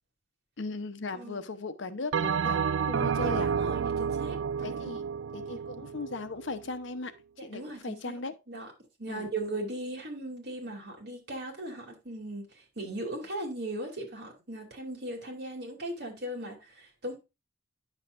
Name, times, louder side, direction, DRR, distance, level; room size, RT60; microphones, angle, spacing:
voice 1, 0.6-2.6 2.9-3.5 4.6-5.0 5.3-7.1 7.4-8.3 9.1-9.3, left 3 dB, 75° left, 0.8 m, -37 dB
Bell, 2.1-6.7, right 6 dB, 80° right, 0.3 m, -30 dB
voice 2, 3.1-5.0 7.4-8.2 8.5-8.7 9.0-17.2, right 1 dB, 55° right, 2.8 m, -38 dB
9.7 x 6.5 x 2.5 m
head